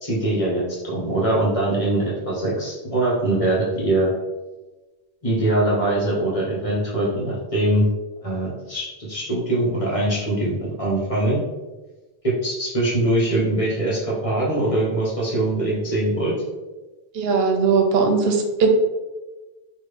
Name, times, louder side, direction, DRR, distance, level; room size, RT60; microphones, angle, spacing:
voice 1, 0.0-4.1 5.2-7.9 8.2-11.4 12.4-16.3, right 1 dB, 35° left, -5 dB, 1.1 m, -22 dB
voice 2, 17.1-18.7, right 5 dB, 80° right, 3 dB, 0.8 m, -19 dB
3.6 x 2.3 x 3.3 m, 1.2 s
omnidirectional pair, 1.0 m